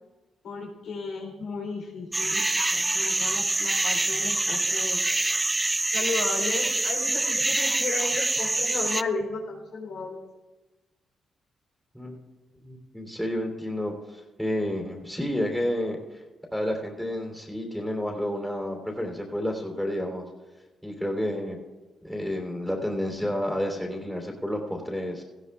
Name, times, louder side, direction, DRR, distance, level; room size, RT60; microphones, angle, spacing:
voice 1, 0.4-5.0 5.9-10.2, left 4 dB, 80° left, -1 dB, 3.6 m, -34 dB
sound 1, 2.1-9.0, right 2 dB, 20° right, 0.4 m, -25 dB
voice 2, 12.6-16.2 16.5-20.2 20.8-21.6 22.0-25.2, left 1 dB, ahead, 0 dB, 3.3 m, -30 dB
17.5 x 15.0 x 2.4 m, 1.2 s
cardioid pair, 80°, 0 cm